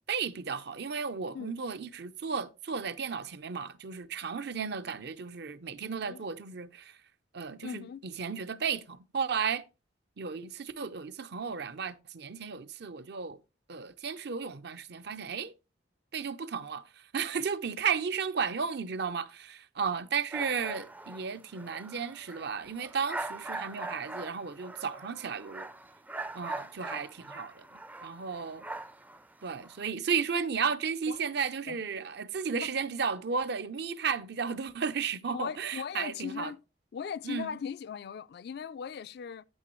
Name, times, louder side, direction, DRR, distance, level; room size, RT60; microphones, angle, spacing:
voice 1, 0.1-6.9 7.3-7.8 8.2-9.6 10.2-13.4 13.7-15.5 16.1-16.8 17.1-25.7 26.3-27.6 28.0-28.6 29.4-36.5 37.2-37.6, right 6 dB, 60° right, 0.6 m, -34 dB
voice 2, 5.9-6.3 7.6-8.0 31.1-31.3 31.7-32.1 32.6-32.7 35.3-36.6 36.9-39.5, left 7 dB, 60° left, 0.3 m, -39 dB
sound 1, 20.3-29.9, right 2 dB, 10° right, 0.4 m, -42 dB
8.7 x 8.2 x 3.1 m
head